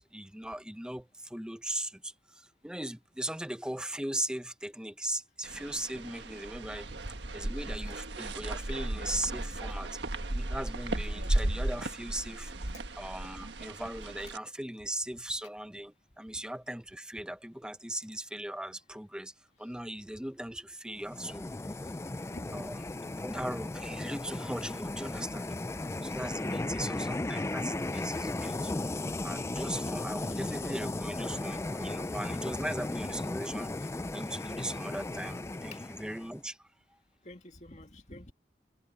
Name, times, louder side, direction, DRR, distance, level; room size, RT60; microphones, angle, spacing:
voice 1, 0.0-6.9 7.3-10.0 10.3-19.3 19.6-21.5 22.5-22.8 23.2-25.5 26.0-28.7 29.2-36.7, right 1 dB, 5° right, 0.7 m, -39 dB
sound 1, 5.4-14.4, right 1 dB, 85° right, 1.5 m, -35 dB
sound 2, 21.0-36.4, left 2 dB, 15° left, 0.3 m, -36 dB
voice 2, 22.3-23.2 26.4-27.3 30.3-30.4 35.7-35.8 37.2-38.3, left 1 dB, 40° left, 2.3 m, -49 dB
head